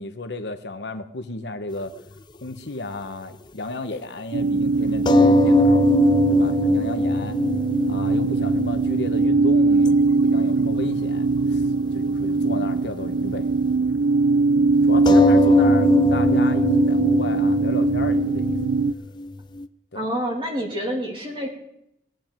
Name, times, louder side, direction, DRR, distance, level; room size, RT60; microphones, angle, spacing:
voice 1, 0.0-2.0 2.4-5.8 6.3-7.4 7.8-11.7 11.9-13.5 13.8-13.9 14.8-18.6 19.9-20.1, left 2 dB, 85° left, 8 dB, 1.1 m, -33 dB
sound 1, 2.0-2.1 5.1-10.1 10.4-10.8 11.2-11.3 15.1-19.7, left 2 dB, 25° left, 0.4 m, -21 dB
sound 2, 4.3-18.9, right 3 dB, 85° right, 0.4 m, -21 dB
voice 2, 19.9-21.5, equal, 30° right, 0 dB, 2.7 m, -27 dB
19.5 x 9.2 x 4.5 m, 0.80 s
head